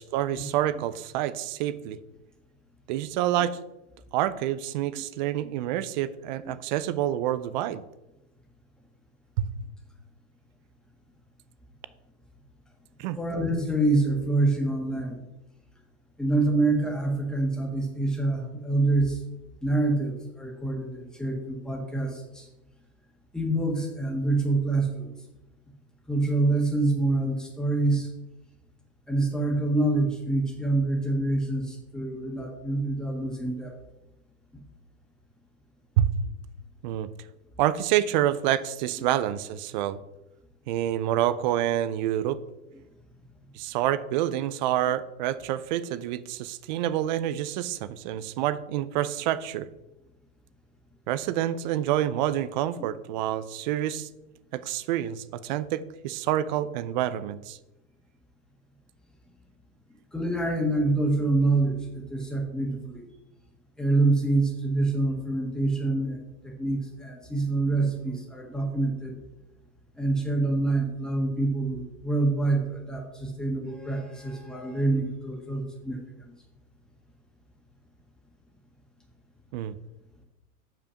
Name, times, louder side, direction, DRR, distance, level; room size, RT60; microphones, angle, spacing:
voice 1, 0.0-2.0 2.9-3.6 4.1-7.8 9.4-9.5 13.0-13.2 36.0-36.2 36.8-37.1 37.6-40.0 40.7-42.4 43.5-49.7 51.1-54.1 54.5-57.6 79.5-79.8, right 12 dB, 35° right, 15 dB, 0.4 m, -27 dB
voice 2, 13.1-15.2 16.2-19.2 19.6-22.4 23.3-25.1 26.1-28.1 29.1-33.8 60.1-63.0 63.8-69.1 70.0-76.0, right 2 dB, ahead, 0 dB, 1.6 m, -26 dB
6.9 x 5.9 x 5.7 m, 0.95 s
hypercardioid pair, 135°, 44 cm